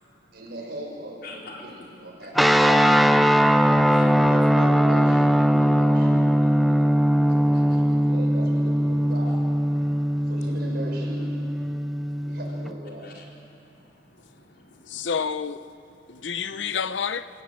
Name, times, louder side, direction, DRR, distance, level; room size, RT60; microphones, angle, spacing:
voice 1, 0.3-2.8 4.3-5.3 5.6-9.3 10.3-11.2 12.2-13.1, equal, 60° right, 6.4 m, -39 dB
voice 2, 1.2-1.6 4.0-4.3 7.5-7.8 9.0-9.1 9.7-10.3 13.0-13.3 13.7-13.8 14.1-15.1 16.1-16.3, left 3 dB, 60° left, 4.4 m, -48 dB
sound 1, 2.3-12.7, equal, ahead, 0.7 m, -20 dB
voice 3, 14.9-15.6 16.1-17.3, left 6 dB, 90° left, 0.7 m, -29 dB
29.0 x 17.5 x 7.8 m
head